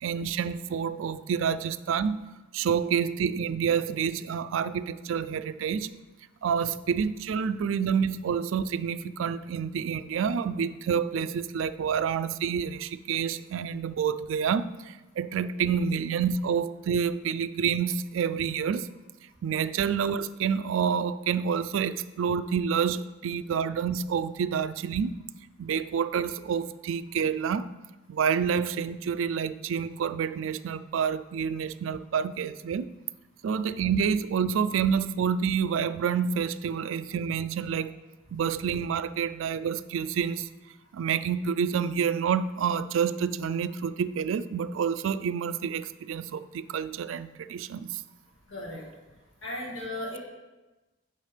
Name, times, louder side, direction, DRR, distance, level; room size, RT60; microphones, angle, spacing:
voice 1, 0.0-2.2 2.5-5.9 6.4-18.9 19.4-25.2 25.6-27.7 28.1-32.9 33.4-37.9 38.3-40.5 40.9-48.0, right 7 dB, 75° right, 14 dB, 0.3 m, -28 dB
voice 2, 48.5-48.8 49.4-50.2, left 1 dB, 75° left, -2 dB, 1.9 m, -36 dB
9.5 x 5.8 x 3.3 m, 1.1 s
head